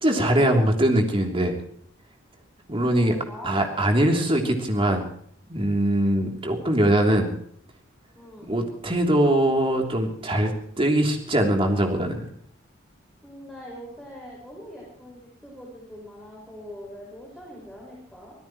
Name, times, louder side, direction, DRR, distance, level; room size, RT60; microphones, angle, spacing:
voice 1, 0.0-1.5 2.7-3.2 3.4-5.1 5.5-7.3 8.5-12.3, right 1 dB, 30° right, 2 dB, 3.2 m, -22 dB
voice 2, 2.9-3.6 8.1-8.5 13.2-18.3, equal, 5° left, -3 dB, 5.6 m, -42 dB
25.0 x 17.0 x 3.2 m, 0.65 s
head